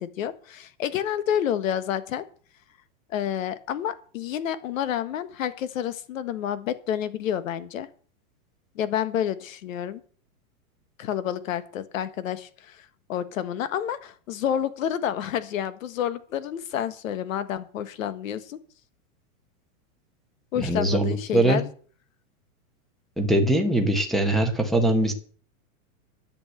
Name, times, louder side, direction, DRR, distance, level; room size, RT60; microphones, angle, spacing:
voice 1, 0.0-2.2 3.1-7.9 8.7-10.0 11.0-18.6 20.5-21.7, left 9 dB, 65° left, 13 dB, 1.5 m, -29 dB
voice 2, 20.6-21.6 23.2-25.1, right 1 dB, ahead, 6 dB, 1.1 m, -22 dB
11.0 x 8.3 x 8.2 m, 0.44 s
supercardioid pair, 170°, 44 cm